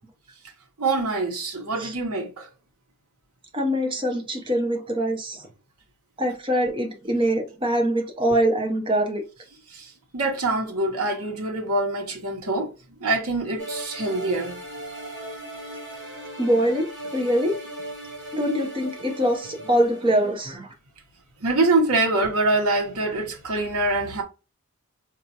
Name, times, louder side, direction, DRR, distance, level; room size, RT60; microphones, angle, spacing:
voice 1, 0.8-2.5 9.7-9.9 10.1-12.7 13.0-14.6 21.4-24.2, right 2 dB, 80° right, 1.0 m, -24 dB
voice 2, 3.5-5.5 6.2-9.2 16.4-16.9 17.1-17.6 18.3-20.7, equal, 20° right, 0.6 m, -23 dB
sound 1, 13.6-20.5, right 1 dB, 55° right, 1.2 m, -38 dB
4.2 x 2.3 x 2.7 m
head